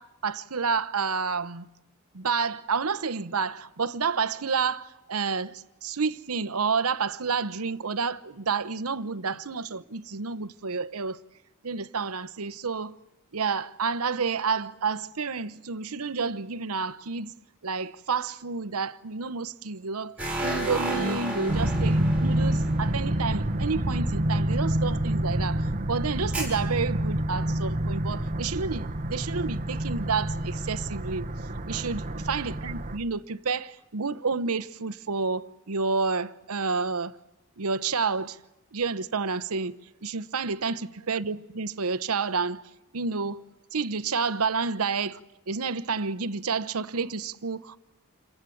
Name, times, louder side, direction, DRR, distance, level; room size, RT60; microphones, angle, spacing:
voice 1, 0.0-1.7 2.1-11.2 11.6-13.0 13.3-17.3 17.6-20.2 20.4-31.3 31.7-37.1 37.6-38.4 38.7-39.7 40.0-42.6 42.9-43.4 43.7-45.2 45.5-47.8, right 5 dB, 70° right, 0.9 m, -30 dB
sound 1, 20.2-23.7 26.3-26.4, right 1 dB, 5° right, 7.5 m, -32 dB
sound 2, 21.5-33.0, right 1 dB, 35° right, 1.2 m, -28 dB
28.0 x 23.5 x 8.6 m
head